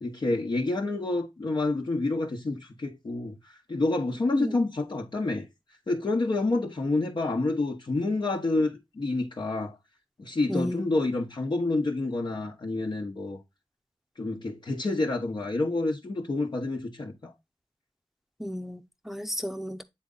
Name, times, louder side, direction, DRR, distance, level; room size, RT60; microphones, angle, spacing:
voice 1, 0.0-3.3 3.7-5.4 5.9-9.7 10.2-13.4 14.2-17.3, left 2 dB, 55° left, 1.3 m, -28 dB
voice 2, 10.5-10.8 18.4-19.8, equal, 5° right, 0.8 m, -32 dB
8.0 x 3.8 x 3.9 m
cardioid pair, 60°, 9 cm